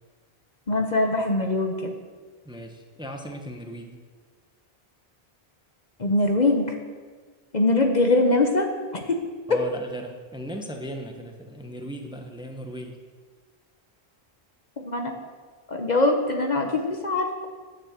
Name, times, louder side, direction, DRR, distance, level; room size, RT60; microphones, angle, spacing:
voice 1, 0.7-1.9 6.0-6.8 7.5-9.3 14.8-15.1 15.7-17.3, left 2 dB, 45° left, 3 dB, 1.1 m, -22 dB
voice 2, 2.4-4.0 9.5-13.0, equal, 5° right, 3 dB, 1.0 m, -37 dB
9.9 x 7.6 x 7.4 m, 1.5 s
omnidirectional pair, 1.1 m